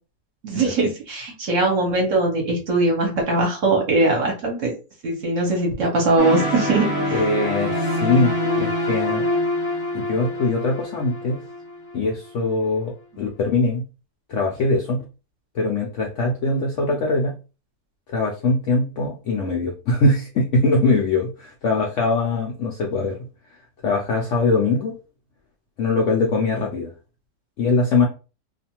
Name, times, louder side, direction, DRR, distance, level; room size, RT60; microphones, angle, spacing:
voice 1, 0.4-4.7 5.0-7.1, right 2 dB, 60° right, 1 dB, 0.9 m, -21 dB
sound 1, 6.2-12.1, left 1 dB, 10° right, 0.8 m, -25 dB
voice 2, 7.1-9.3 9.9-11.4 11.9-13.8 14.3-15.0 15.5-17.3 18.1-23.2 23.8-25.0 25.8-26.9 27.6-28.1, left 3 dB, 70° left, 0 dB, 0.7 m, -22 dB
2.5 x 2.4 x 2.8 m, 0.32 s
omnidirectional pair, 1.8 m